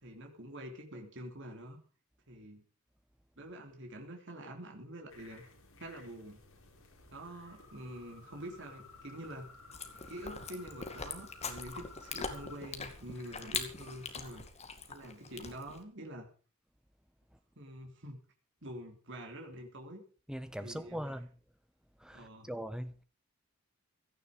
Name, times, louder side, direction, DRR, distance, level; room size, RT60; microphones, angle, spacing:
voice 1, 0.0-1.8 2.3-2.6 3.4-5.4 5.8-6.4 7.1-9.5 10.1-14.4 14.9-16.3 17.6-18.2 18.6-20.0 20.6-21.1 22.1-22.5, right 1 dB, 55° right, 3.4 m, -46 dB
sound 1, 5.1-14.5, left 3 dB, 65° left, 5.5 m, -56 dB
Chewing mastication, 9.7-15.8, left 5 dB, 30° left, 2.3 m, -42 dB
voice 2, 20.3-21.3 22.0-23.0, equal, 5° right, 1.1 m, -40 dB
17.0 x 13.5 x 5.2 m
head